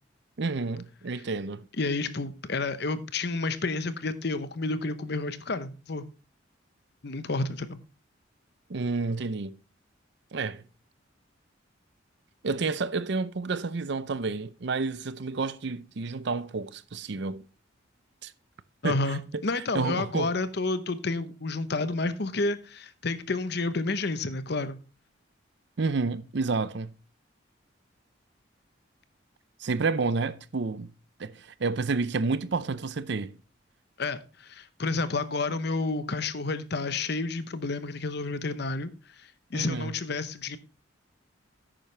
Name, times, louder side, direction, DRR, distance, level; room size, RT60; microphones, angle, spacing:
voice 1, 0.4-1.6 8.7-9.6 10.3-10.6 12.4-17.5 18.2-18.3 18.8-19.4 19.7-20.3 25.8-26.9 29.6-30.9 31.2-33.4 39.5-39.9, right 4 dB, 60° right, 0.6 m, -30 dB
voice 2, 1.8-6.1 7.0-7.8 18.8-24.8 34.0-38.9 39.2-40.6, left 3 dB, 55° left, 0.8 m, -30 dB
10.5 x 8.9 x 3.3 m
head